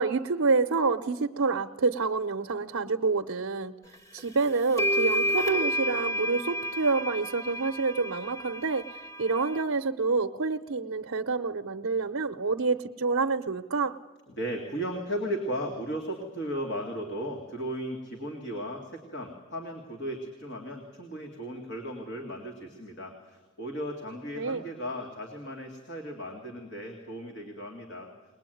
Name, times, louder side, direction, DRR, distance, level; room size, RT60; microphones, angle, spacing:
voice 1, 0.0-3.7 4.1-8.8 9.2-13.9 24.3-24.6, right 4 dB, 75° right, 4 dB, 0.7 m, -27 dB
sound 1, 4.2-4.3 4.8-9.6, equal, 15° left, 1.2 m, -30 dB
voice 2, 14.3-28.1, equal, 50° left, 2 dB, 2.4 m, -36 dB
21.5 x 20.0 x 9.2 m, 1.2 s
head